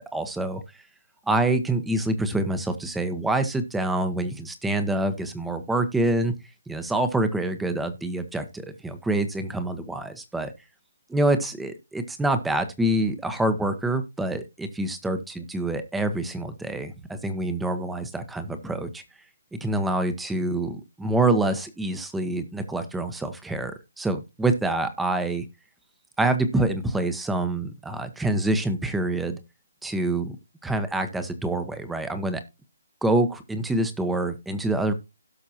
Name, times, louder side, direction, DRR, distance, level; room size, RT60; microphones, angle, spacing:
voice 1, 0.1-0.6 1.3-6.3 6.7-10.5 11.1-19.0 19.6-25.4 26.2-29.4 29.8-30.4 30.6-32.4 33.0-34.9, right 2 dB, 5° right, 9 dB, 1.0 m, -26 dB
17.0 x 5.8 x 2.8 m, 0.25 s
hypercardioid pair, 150°, 0 cm